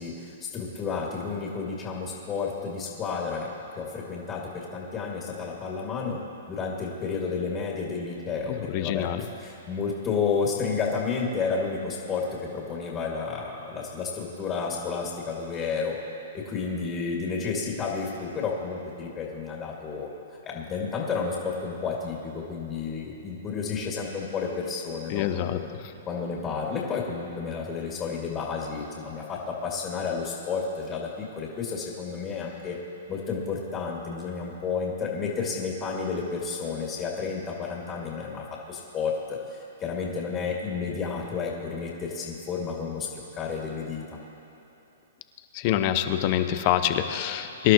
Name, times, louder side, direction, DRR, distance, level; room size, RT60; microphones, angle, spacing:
voice 1, 0.0-6.2 6.5-16.0 16.3-20.1 20.4-25.7 26.1-32.8 33.1-44.0, left 5 dB, 25° left, -3 dB, 2.4 m, -31 dB
voice 2, 8.5-9.2 25.1-25.6 45.5-47.7, left 12 dB, 45° left, 9 dB, 0.8 m, -25 dB
24.0 x 11.5 x 3.1 m, 3.0 s
hypercardioid pair, 130°, 0 cm